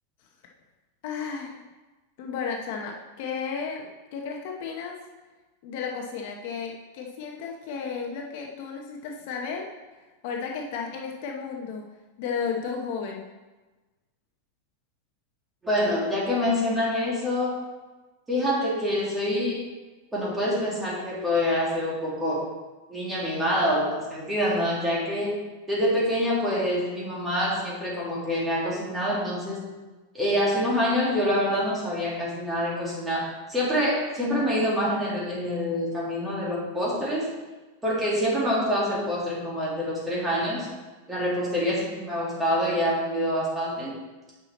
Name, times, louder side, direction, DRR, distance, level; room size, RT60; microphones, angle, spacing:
voice 1, 1.0-1.6 2.2-5.0 5.6-9.7 10.2-11.9 12.2-13.2, left 6 dB, 45° left, 1 dB, 0.8 m, -33 dB
voice 2, 15.6-17.6 18.3-19.7 20.1-22.4 22.9-29.6 30.1-37.3 37.8-40.7 41.1-43.9, equal, 10° right, -6 dB, 2.0 m, -26 dB
8.8 x 5.8 x 4.1 m, 1.2 s
supercardioid pair, 170°, 0 cm